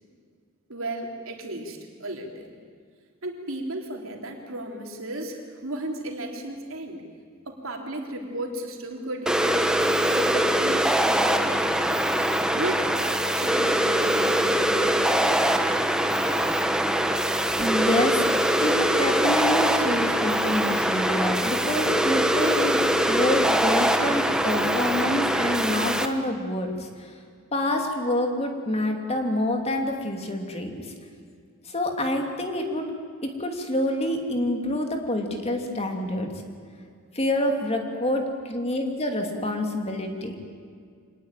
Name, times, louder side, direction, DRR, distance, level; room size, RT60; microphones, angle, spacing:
voice 1, 0.7-2.5 3.2-7.0 7.5-11.6 12.5-15.5, right 1 dB, 65° right, 2 dB, 3.7 m, -35 dB
sound 1, 9.3-26.1, right 1 dB, 5° right, 1.1 m, -23 dB
voice 2, 17.6-18.3 18.6-27.1 27.5-30.9 31.6-32.9 33.2-36.3 37.1-40.4, left 1 dB, 30° left, 3 dB, 2.7 m, -27 dB
25.5 x 19.5 x 9.1 m, 2.1 s
head